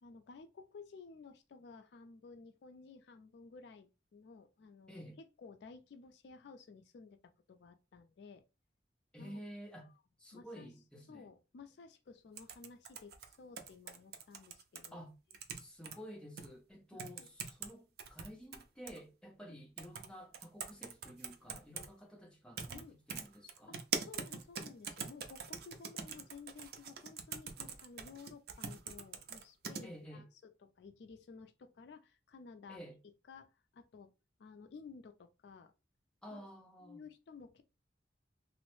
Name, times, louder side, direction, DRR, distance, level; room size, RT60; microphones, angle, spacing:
voice 1, 0.0-5.0 5.4-8.4 9.2-9.4 10.3-10.7 11.1-15.1 17.2-17.3 21.5-21.6 22.7-23.0 23.7-32.8 33.3-33.5 33.7-34.1 34.4-35.7 36.3-36.4 36.8-37.6, left 4 dB, 65° left, 0.3 m, -54 dB
voice 2, 4.9-5.2 9.1-9.9 10.2-11.3 14.9-15.1 15.6-23.8 25.6-25.8 29.8-30.3 32.7-33.0 36.2-37.1, equal, 5° left, 0.6 m, -51 dB
sound 1, 12.4-14.9 15.3-16.0 16.4-16.5 17.0-17.7 18.0-19.0 19.8-20.1 20.3-21.9 22.6-22.8 23.1-29.8, right 6 dB, 55° right, 0.4 m, -42 dB
3.0 x 2.0 x 3.1 m
head